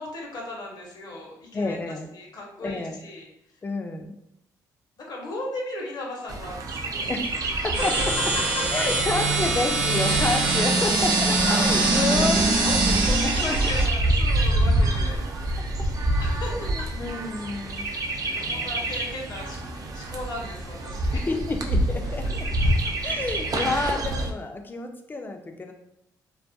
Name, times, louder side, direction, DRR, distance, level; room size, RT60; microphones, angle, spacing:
voice 1, 0.0-1.8 2.1-3.3 5.0-7.1 8.5-8.6 11.1-11.6 12.0-15.7 16.2-16.9 18.2-21.2 22.8-22.9, left 2 dB, 60° left, -1 dB, 0.8 m, -36 dB
voice 2, 1.5-2.1 2.6-3.0 3.6-4.1 7.1-7.9 8.7-12.6 13.2-13.6 16.5-17.9 18.4-18.9 21.1-22.5 23.0-25.7, left 3 dB, 25° left, 4 dB, 0.4 m, -30 dB
Chirp tweet, 6.3-24.3, right 1 dB, 50° right, 0.4 m, -27 dB
sound 1, 7.7-13.9, right 3 dB, 85° right, 0.7 m, -23 dB
2.3 x 2.1 x 2.6 m, 0.78 s
supercardioid pair, 70°, 8 cm